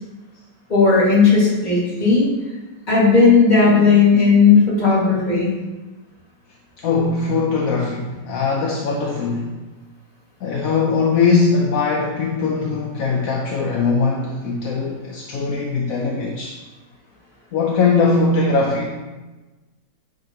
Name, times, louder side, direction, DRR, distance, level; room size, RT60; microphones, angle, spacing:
voice 1, 0.7-2.3 2.9-5.5, left 4 dB, 25° left, -7 dB, 2.0 m, -14 dB
voice 2, 3.6-4.0 6.8-9.6 10.4-16.6 17.5-18.9, left 4 dB, 65° left, -2 dB, 0.9 m, -20 dB
8.6 x 3.9 x 2.9 m, 1.2 s
omnidirectional pair, 2.0 m